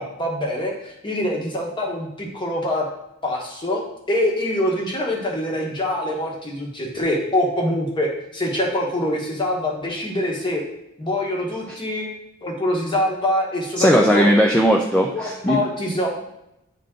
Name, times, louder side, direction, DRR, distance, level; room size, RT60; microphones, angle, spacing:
voice 1, 0.0-2.9 3.2-3.8 4.1-10.6 11.0-12.1 12.4-14.3 15.1-16.1, left 1 dB, 20° left, -1 dB, 1.3 m, -24 dB
voice 2, 13.8-15.6, equal, 5° left, 0 dB, 0.4 m, -17 dB
8.7 x 3.7 x 3.7 m, 0.82 s
head